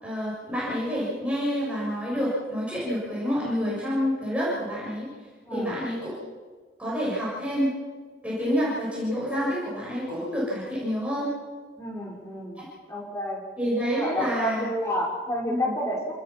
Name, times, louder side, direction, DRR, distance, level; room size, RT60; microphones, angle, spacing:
voice 1, 0.0-5.1 5.5-6.1 6.8-7.7 8.2-11.3 12.6-12.7 13.6-14.7 15.5-15.7, equal, 5° right, -7 dB, 7.2 m, -28 dB
voice 2, 5.4-5.8 11.8-13.4 13.9-16.1, equal, 15° left, -2 dB, 5.5 m, -30 dB
28.0 x 19.5 x 6.1 m, 1.4 s
head